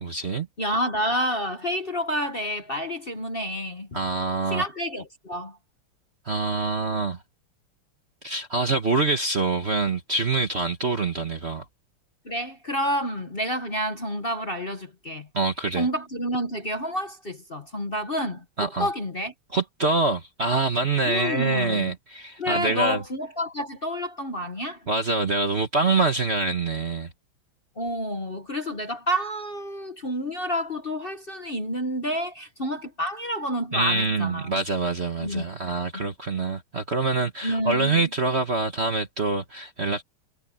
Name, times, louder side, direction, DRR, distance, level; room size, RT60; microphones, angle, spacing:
voice 1, 0.0-0.5 3.9-4.7 6.2-7.2 8.2-11.6 15.3-15.9 18.6-18.9 19.5-23.0 24.9-27.1 33.7-40.0, right 3 dB, 35° right, 1.3 m, -25 dB
voice 2, 0.6-3.9 4.5-5.6 12.2-15.3 15.8-18.4 18.8-19.3 21.0-21.9 22.4-24.8 27.8-34.6 35.2-35.4 35.9-36.0 37.4-38.1, equal, 30° left, 1.3 m, -29 dB
omnidirectional pair, 2.4 m